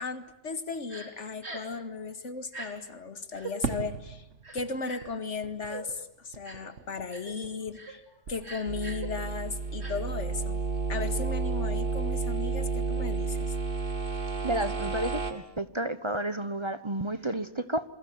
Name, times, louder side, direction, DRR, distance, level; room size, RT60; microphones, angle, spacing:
voice 1, 0.0-4.3 4.5-8.0 8.3-10.6 10.9-13.5, left 4 dB, 80° left, 11 dB, 2.2 m, -36 dB
Crying sobbing, 0.9-1.1 1.4-1.7 2.5-2.7 3.3-3.5 4.4-5.1 5.7-5.8 6.4-6.7 7.1-7.3 7.7-7.9 8.4-9.1 9.8-9.9, right 4 dB, 65° right, 4.6 m, -41 dB
Fireworks, 3.6-8.0 8.2-9.0, right 5 dB, 80° right, 1.8 m, -40 dB
sound 1, 8.7-15.3, right 4 dB, 45° right, 2.8 m, -31 dB
voice 2, 14.4-17.8, right 1 dB, 25° right, 12 dB, 1.1 m, -31 dB
28.0 x 22.5 x 9.5 m, 0.77 s
omnidirectional pair, 1.2 m